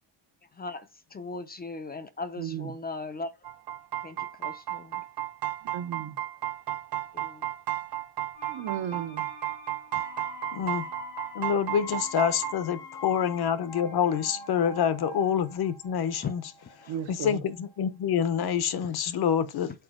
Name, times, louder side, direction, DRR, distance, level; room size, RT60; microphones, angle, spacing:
voice 1, 0.6-3.3 4.0-5.0 7.1-7.5 16.2-16.3, left 3 dB, 25° left, 0.4 m, -38 dB
voice 2, 2.4-2.8 5.7-6.2 8.5-9.3 16.9-17.4, right 10 dB, 80° right, 1.0 m, -34 dB
sound 1, 3.4-12.5, right 13 dB, 55° right, 0.8 m, -34 dB
sound 2, 8.3-18.1 18.4-18.5, left 3 dB, 85° left, 3.4 m, -45 dB
voice 3, 10.5-10.8 11.3-16.4 17.1-19.7, left 8 dB, 60° left, 0.8 m, -27 dB
6.7 x 4.3 x 3.6 m
wide cardioid pair, 175°, 43 cm